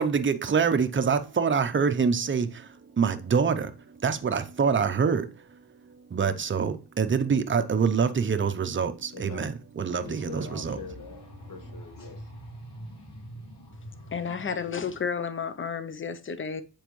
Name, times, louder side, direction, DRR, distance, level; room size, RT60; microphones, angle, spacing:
voice 1, 0.0-10.8, right 6 dB, 30° right, 0.6 m, -26 dB
voice 2, 9.1-9.5 10.0-11.2 11.5-12.3, left 5 dB, 55° left, 1.2 m, -43 dB
sound 1, 9.9-15.0, equal, 80° left, 3.0 m, -45 dB
voice 3, 14.1-16.6, left 6 dB, 30° left, 0.6 m, -31 dB
7.2 x 4.6 x 3.1 m
wide cardioid pair, 110°, 41 cm